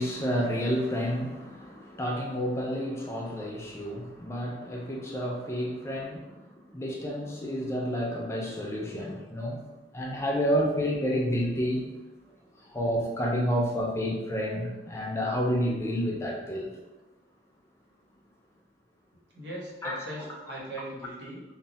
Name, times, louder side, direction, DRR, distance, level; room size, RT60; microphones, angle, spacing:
voice 1, 0.0-9.6 9.9-11.9 12.7-16.7 19.8-20.0, equal, 15° left, -1 dB, 0.3 m, -30 dB
voice 2, 19.3-21.4, right 1 dB, 85° right, -4 dB, 0.9 m, -40 dB
2.0 x 2.0 x 3.7 m, 1.1 s
head